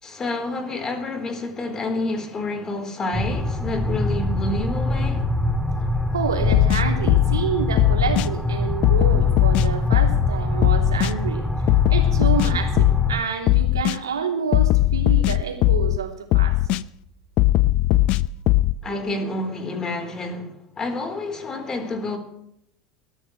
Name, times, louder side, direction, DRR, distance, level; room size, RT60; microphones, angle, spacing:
voice 1, 0.0-5.3 18.8-22.2, left 2 dB, 25° left, 3.9 m, -29 dB
sound 1, 3.1-13.2, left 1 dB, 5° left, 2.3 m, -24 dB
voice 2, 6.1-11.5 11.9-16.6, right 6 dB, 85° right, 3.1 m, -28 dB
sound 2, 6.4-7.4 7.8-8.3 8.8-10.3 10.6-11.1 11.7-13.1 13.5-14.0 14.5-16.0 16.3-16.8 17.4-18.7, left 16 dB, 50° left, 0.5 m, -18 dB
22.5 x 14.0 x 3.2 m
hypercardioid pair, 85°, 2 cm